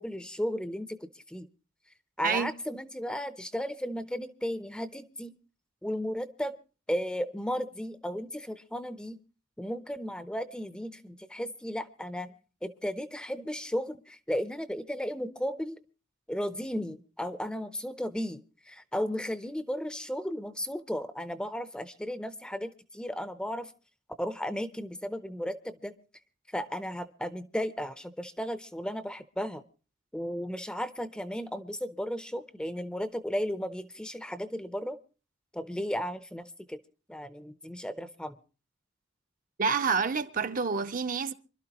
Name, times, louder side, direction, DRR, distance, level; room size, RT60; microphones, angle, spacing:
voice 1, 0.0-1.5 2.2-5.3 5.8-6.5 6.9-9.2 9.6-12.3 12.6-15.8 16.3-23.7 24.2-25.9 26.5-29.6 30.1-35.0 35.5-36.8 37.1-38.4, equal, 5° left, 0.6 m, -35 dB
voice 2, 39.6-41.3, right 5 dB, 45° right, 0.7 m, -28 dB
26.0 x 12.0 x 2.9 m
head